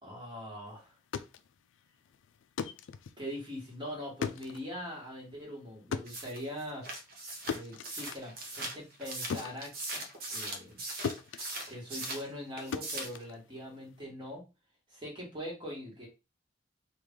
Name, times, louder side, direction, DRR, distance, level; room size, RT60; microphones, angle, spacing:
voice 1, 0.0-0.9 3.2-6.9 7.4-10.0 10.3-10.8 11.7-14.5 14.9-16.1, equal, 25° right, -2 dB, 1.5 m, -42 dB
sound 1, 0.9-10.8 11.0-14.0, left 6 dB, 75° left, 0.3 m, -41 dB
sound 2, 6.1-12.3 12.6-13.2, right 2 dB, 50° right, 0.8 m, -40 dB
3.2 x 2.4 x 3.6 m, 0.27 s
head